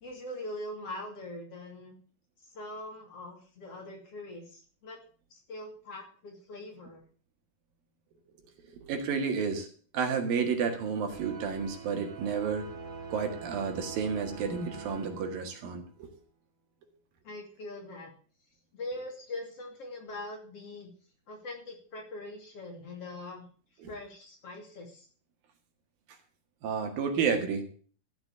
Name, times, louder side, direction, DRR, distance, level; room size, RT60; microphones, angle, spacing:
voice 1, 0.0-1.9 2.5-5.0 5.5-7.0 17.2-18.1 18.7-20.9 21.3-23.4 23.9-25.1, left 1 dB, 45° left, 1 dB, 3.4 m, -42 dB
voice 2, 8.6-9.7 9.9-12.7 13.1-16.1 23.8-23.9 26.6-27.6, right 6 dB, 70° right, 5 dB, 3.5 m, -31 dB
sound 1, 11.1-15.9, right 5 dB, 25° right, 1.9 m, -44 dB
14.0 x 6.0 x 8.3 m, 0.43 s
omnidirectional pair, 4.2 m